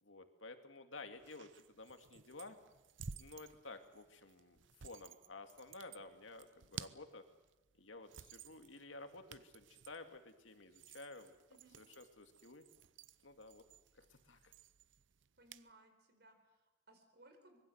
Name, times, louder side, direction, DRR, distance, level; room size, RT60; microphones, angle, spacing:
voice 1, 0.0-2.6 3.1-7.2 7.8-11.3 11.8-12.6 13.2-13.6 13.9-14.5, left 3 dB, 85° left, 7 dB, 2.3 m, -53 dB
sound 1, 1.1-15.7, right 6 dB, 75° right, 0.8 m, -56 dB
voice 2, 15.4-17.6, right 2 dB, 55° right, 6 dB, 4.8 m, -64 dB
24.5 x 22.0 x 8.0 m, 0.98 s
head